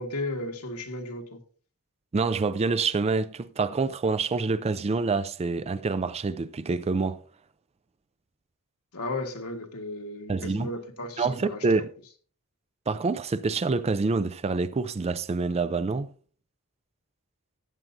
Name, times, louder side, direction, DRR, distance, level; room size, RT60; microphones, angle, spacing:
voice 1, 0.0-1.4 8.9-11.8, left 2 dB, 75° left, 1.6 m, -35 dB
voice 2, 2.1-7.2 10.3-10.7 11.2-11.9 12.9-16.1, right 4 dB, 30° right, 0.4 m, -26 dB
14.5 x 9.1 x 2.7 m
head